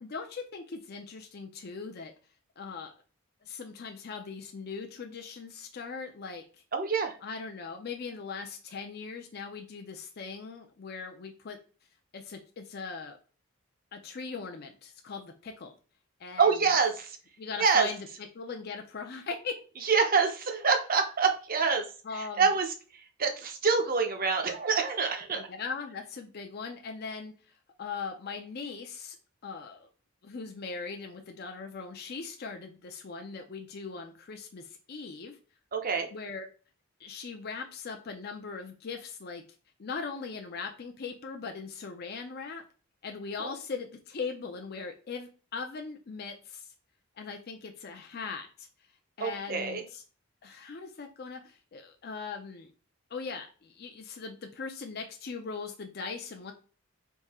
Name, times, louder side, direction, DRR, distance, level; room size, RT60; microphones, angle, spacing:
voice 1, 0.0-2.1 2.6-2.9 3.4-6.4 7.2-11.6 12.1-13.2 13.9-15.7 16.2-16.6 17.4-18.1 18.3-19.5 22.0-22.5 25.4-27.3 27.8-29.2 29.4-29.9 30.2-35.4 36.1-36.5 37.0-39.4 39.8-42.6 43.0-46.7 47.2-48.7 49.2-50.0 50.4-52.7 53.1-56.5, left 5 dB, 45° left, 4 dB, 0.5 m, -40 dB
voice 2, 6.7-7.2 16.4-17.2 17.6-17.9 19.8-21.8 22.1-22.7 23.2-25.4 35.7-36.1 43.4-43.5 49.2-49.8, right 5 dB, 40° right, 5 dB, 0.7 m, -26 dB
3.6 x 2.7 x 4.2 m, 0.37 s
head